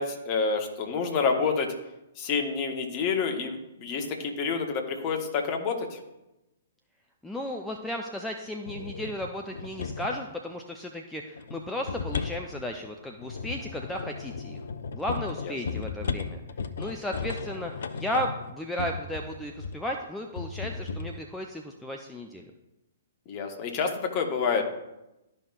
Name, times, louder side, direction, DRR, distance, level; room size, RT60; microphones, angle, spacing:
voice 1, 0.0-1.7 2.2-6.0 15.4-15.5 23.3-24.6, left 5 dB, 30° left, 3 dB, 1.1 m, -28 dB
voice 2, 7.2-14.6 14.9-16.4 16.8-22.5, equal, 5° left, 2 dB, 0.5 m, -34 dB
sound 1, 8.7-10.3 11.4-19.9 20.4-21.2, left 5 dB, 60° left, 0.5 m, -35 dB
12.0 x 5.4 x 2.5 m, 0.95 s
figure-of-eight pair, 115°, 0 cm